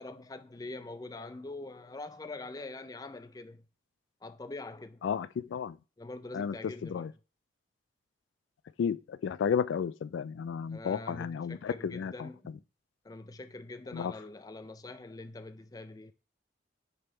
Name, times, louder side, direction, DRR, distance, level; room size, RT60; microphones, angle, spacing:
voice 1, 0.0-3.6 4.2-5.0 6.0-7.1 10.7-12.6 13.0-16.1, left 2 dB, 20° left, 0.4 m, -44 dB
voice 2, 5.0-5.8 6.3-6.6 6.8-7.1 8.8-12.3 13.9-14.1, left 7 dB, 90° left, 0.3 m, -32 dB
6.8 x 3.5 x 4.4 m
head